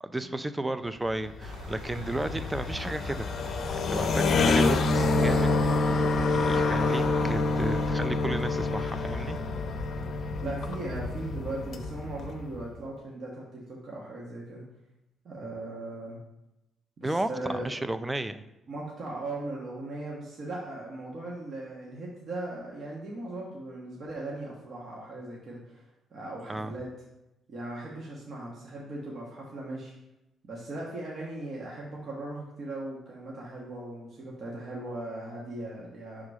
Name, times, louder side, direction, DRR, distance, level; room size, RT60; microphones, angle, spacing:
voice 1, 0.0-3.3 3.7-5.5 5.8-9.4 17.0-18.5 26.5-26.7, right 2 dB, 15° right, 12 dB, 0.4 m, -33 dB
sound 1, 1.1-12.7, left 3 dB, 55° left, 0.6 m, -27 dB
sound 2, 1.4-7.9, right 2 dB, 85° right, 1.1 m, -46 dB
voice 2, 10.4-14.6 15.2-16.2 17.0-17.7 18.7-25.8 26.1-26.9 27.5-29.9 30.4-36.3, right 2 dB, 55° right, -4 dB, 1.1 m, -38 dB
5.2 x 3.7 x 4.8 m, 0.93 s
cardioid pair, 90°, 0 cm